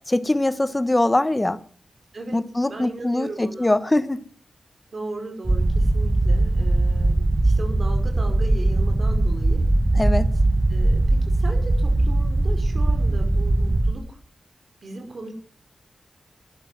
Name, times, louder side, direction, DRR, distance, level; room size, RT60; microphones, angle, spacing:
voice 1, 0.1-1.6 2.3-4.2 9.9-10.3, left 1 dB, 20° left, 14 dB, 1.3 m, -22 dB
voice 2, 2.1-3.7 4.9-9.7 10.7-14.2 14.8-15.3, right 2 dB, 55° right, 5 dB, 5.4 m, -37 dB
sound 1, 5.4-13.9, right 2 dB, 25° right, 1.3 m, -20 dB
12.0 x 11.5 x 7.5 m, 0.44 s
wide cardioid pair, 90°, 0 cm